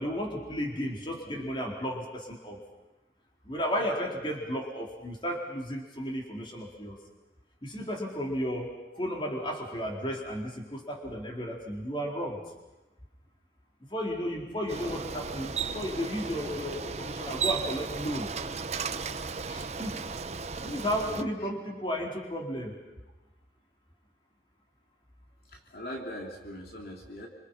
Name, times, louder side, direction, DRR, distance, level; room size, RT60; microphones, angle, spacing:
voice 1, 0.0-2.6 3.5-7.0 7.6-12.4 13.9-18.3 19.5-20.0 20.6-22.7, equal, 30° left, 0 dB, 4.3 m, -33 dB
Bicycle, 14.7-21.2, right 5 dB, 40° right, 0.9 m, -35 dB
voice 2, 25.5-27.3, equal, 60° left, 0 dB, 3.3 m, -41 dB
28.0 x 26.5 x 5.8 m, 1.1 s
head